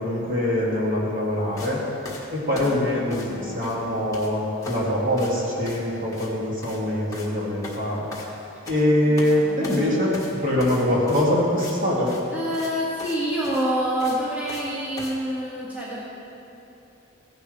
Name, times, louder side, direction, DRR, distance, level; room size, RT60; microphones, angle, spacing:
voice 1, 0.0-1.8 2.3-8.0 8.7-10.2 10.4-12.1, left 1 dB, 40° right, -6 dB, 2.5 m, -23 dB
sound 1, 1.6-1.7 2.0-3.4 3.6-4.3 4.6-4.9 5.2-5.3 5.7-5.9 6.1-6.3 6.6-6.8 7.1-7.3 7.6-8.8 9.2-9.4 9.6-11.8 12.1-12.2 12.5-12.7 13.0-13.2 13.4-14.7 15.0-15.2, left 2 dB, 15° left, 1.4 m, -39 dB
voice 2, 2.5-2.9 3.3-3.7 9.0-10.0 12.3-16.0, equal, 10° right, -9 dB, 1.7 m, -28 dB
15.5 x 10.5 x 3.3 m, 2.8 s
head